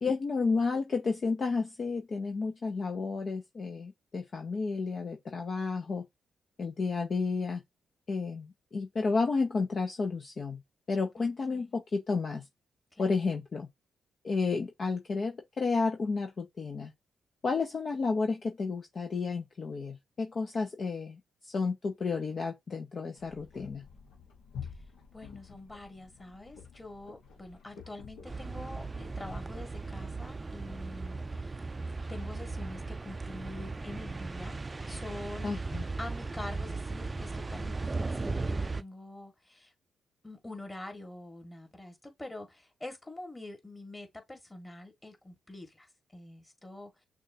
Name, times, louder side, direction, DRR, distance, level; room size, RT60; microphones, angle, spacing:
voice 1, 0.0-6.1 6.6-7.6 8.1-10.6 10.9-12.4 13.0-13.7 14.2-16.9 17.4-23.8 35.4-35.8, left 4 dB, 50° left, 0.6 m, -31 dB
voice 2, 11.2-11.7 12.9-13.1 25.1-31.6 32.1-34.6 34.9-35.5 36.0-39.7 40.2-46.9, left 2 dB, 20° left, 1.7 m, -45 dB
sound 1, 23.1-29.4, left 7 dB, 75° left, 1.1 m, -49 dB
sound 2, 28.2-38.8, right 3 dB, 30° right, 0.4 m, -37 dB
6.2 x 2.4 x 2.7 m
hypercardioid pair, 45°, 0 cm